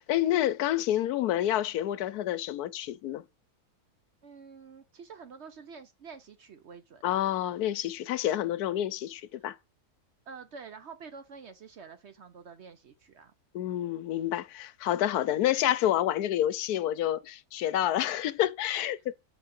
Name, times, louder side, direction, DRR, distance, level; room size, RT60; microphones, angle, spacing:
voice 1, 0.0-3.2 7.0-9.6 13.5-19.1, left 12 dB, 80° left, 1.1 m, -28 dB
voice 2, 4.2-7.0 10.3-13.3, right 5 dB, 55° right, 0.9 m, -48 dB
7.6 x 6.1 x 5.3 m
omnidirectional pair, 1.6 m